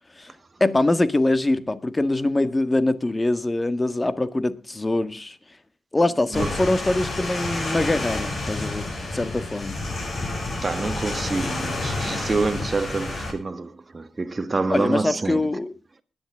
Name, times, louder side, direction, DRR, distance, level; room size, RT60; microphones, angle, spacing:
voice 1, 0.6-5.4 5.9-9.8 14.7-15.7, left 2 dB, 25° left, 1.6 m, -23 dB
sound 1, 6.3-13.3, left 2 dB, 45° left, 7.4 m, -29 dB
voice 2, 10.6-15.5, right 3 dB, 35° right, 1.4 m, -27 dB
20.0 x 10.5 x 3.6 m
supercardioid pair, 50°, 0 cm